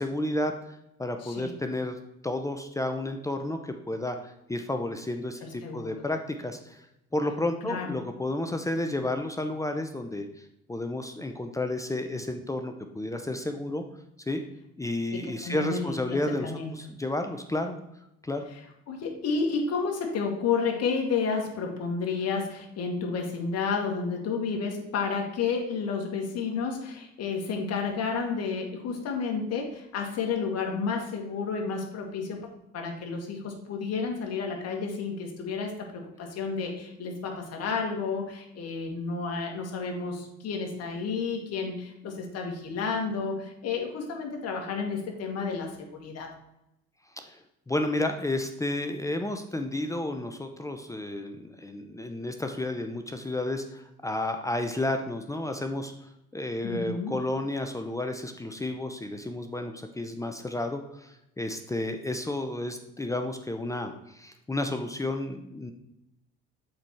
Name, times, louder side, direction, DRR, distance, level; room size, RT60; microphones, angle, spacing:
voice 1, 0.0-2.0 2.2-6.8 7.1-13.8 14.3-14.4 14.8-17.8 18.2-18.5 47.1-65.7, left 1 dB, 10° left, 5 dB, 0.7 m, -32 dB
voice 2, 1.2-1.5 5.4-5.9 7.6-7.9 15.1-16.7 18.9-32.5 32.7-46.3 56.6-57.1, left 5 dB, 60° left, 2 dB, 1.9 m, -31 dB
7.5 x 4.3 x 4.6 m, 0.85 s
supercardioid pair, 90°, 29 cm